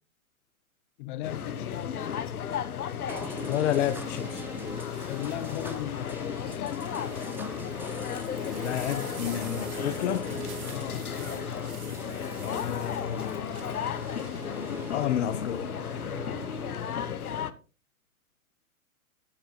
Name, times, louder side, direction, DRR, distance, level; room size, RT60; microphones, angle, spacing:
voice 1, 1.0-2.0 4.9-6.9 10.7-11.0, left 12 dB, 35° left, 0.9 m, -38 dB
sound 1, 1.2-17.5, left 8 dB, 85° left, 1.0 m, -34 dB
sound 2, 2.3-2.5 3.9-5.8 6.3-15.6 16.0-16.4, right 8 dB, 50° right, 4.1 m, -50 dB
sound 3, 3.1-16.8, right 3 dB, 5° right, 0.7 m, -43 dB
voice 2, 3.4-4.4 8.5-10.3 12.4-13.7 14.4-15.6, left 10 dB, 55° left, 1.2 m, -31 dB
13.5 x 6.7 x 3.1 m
hypercardioid pair, 130°, 43 cm